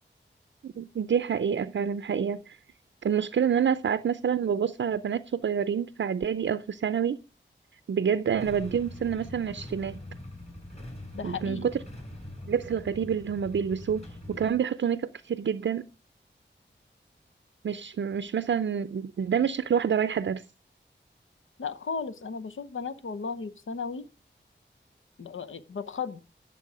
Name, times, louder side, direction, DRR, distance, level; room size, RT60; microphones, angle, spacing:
voice 1, 0.6-2.6 3.0-7.2 7.9-10.0 11.2-11.8 12.5-15.9 17.6-20.4, right 7 dB, 70° right, 0.5 m, -27 dB
Motorcycle / Engine starting / Idling, 8.4-14.5, left 1 dB, 35° left, 6.4 m, -43 dB
voice 2, 11.1-11.7 21.6-24.1 25.2-26.2, left 5 dB, 85° left, 0.8 m, -35 dB
11.5 x 7.3 x 4.9 m
wide cardioid pair, 90°, 20 cm